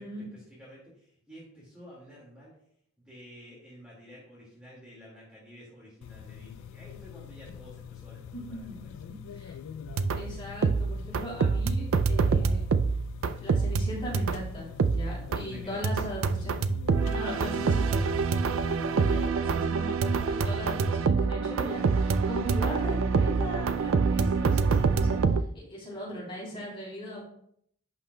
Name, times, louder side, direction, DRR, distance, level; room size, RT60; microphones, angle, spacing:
voice 1, 0.3-2.5 3.0-8.9 15.5-15.9 17.9-18.1, equal, 5° right, -7 dB, 2.0 m, -50 dB
sound 1, 6.0-19.3, left 8 dB, 85° left, 0.3 m, -44 dB
voice 2, 8.3-8.7 9.3-9.5 10.1-12.6 13.4-16.6 17.1-18.0 18.9-27.2, equal, 25° left, -5 dB, 3.3 m, -39 dB
sound 2, 9.9-10.4 10.6-14.5 14.8-15.5 15.8-25.4, right 5 dB, 80° right, 0.4 m, -26 dB
11.0 x 5.6 x 2.2 m, 0.66 s
head